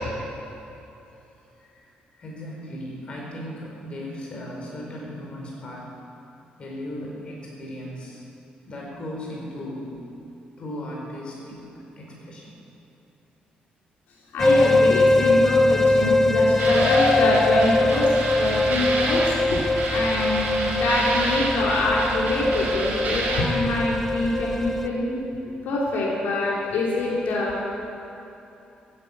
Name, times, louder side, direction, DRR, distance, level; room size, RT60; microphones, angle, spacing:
voice 1, 1.6-5.9 6.6-8.2 8.7-9.9 10.6-12.5, left 1 dB, 35° left, -2 dB, 4.5 m, -37 dB
voice 2, 14.3-19.6 19.9-25.2 25.6-27.6, left 2 dB, 80° left, -3 dB, 3.0 m, -24 dB
sound 1, 14.4-24.9, left 2 dB, 10° left, 0.6 m, -22 dB
sound 2, 16.6-23.4, right 3 dB, 60° right, 4.2 m, -30 dB
15.5 x 10.5 x 8.4 m, 2.9 s
cardioid pair, 170°, 3 cm